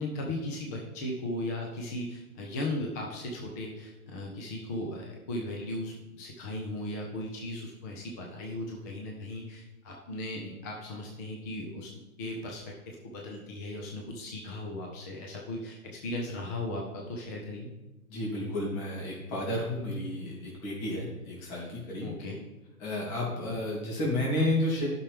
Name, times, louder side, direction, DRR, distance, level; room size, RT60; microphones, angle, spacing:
voice 1, 0.0-11.9 12.2-17.7 22.0-22.4 23.5-23.6, left 1 dB, 15° left, -1 dB, 0.4 m, -37 dB
voice 2, 18.1-22.1 22.8-24.9, left 1 dB, 35° left, -4 dB, 2.9 m, -31 dB
11.0 x 6.0 x 3.4 m, 1.0 s
hypercardioid pair, 135°, 44 cm